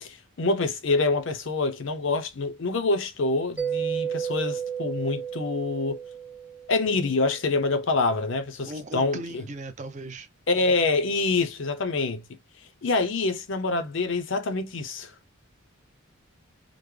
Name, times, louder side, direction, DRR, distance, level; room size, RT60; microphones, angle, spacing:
voice 1, 0.0-6.0 6.7-9.4 10.5-12.2 12.8-15.1, left 3 dB, 60° left, 0.6 m, -26 dB
Mallet percussion, 3.6-7.0, right 8 dB, 5° right, 0.8 m, -32 dB
voice 2, 8.6-10.3, right 2 dB, 35° right, 0.5 m, -37 dB
3.7 x 2.1 x 3.2 m
head